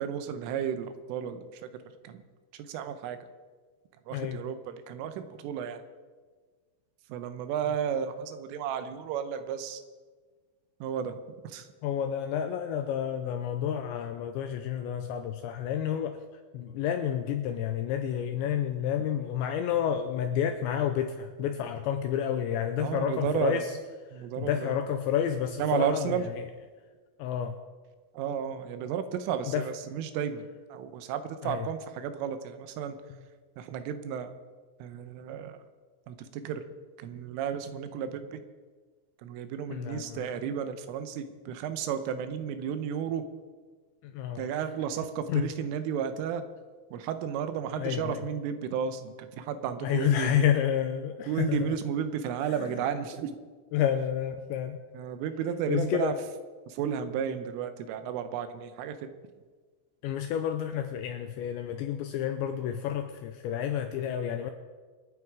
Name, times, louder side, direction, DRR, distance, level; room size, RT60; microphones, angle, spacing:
voice 1, 0.0-1.4 2.0-2.2 2.5-3.2 4.1-5.8 7.1-9.8 10.8-11.2 11.4-11.7 22.8-23.6 24.1-24.8 25.6-26.3 28.1-30.4 30.7-33.0 33.6-34.3 34.8-35.6 36.1-36.6 37.0-38.4 39.2-43.2 44.4-46.4 46.9-50.5 51.3-53.3 54.9-56.1 56.7-59.1, right 8 dB, 80° right, 9 dB, 3.3 m, -33 dB
voice 2, 11.8-16.2 16.5-23.7 24.4-26.5 27.2-27.6 29.5-29.6 31.4-31.7 39.7-40.4 44.1-44.5 45.3-45.5 47.8-48.2 49.8-51.7 53.7-54.8 55.7-56.1 60.0-64.5, left 9 dB, 90° left, 7 dB, 2.6 m, -30 dB
26.5 x 9.5 x 4.7 m, 1.4 s
omnidirectional pair, 6.0 m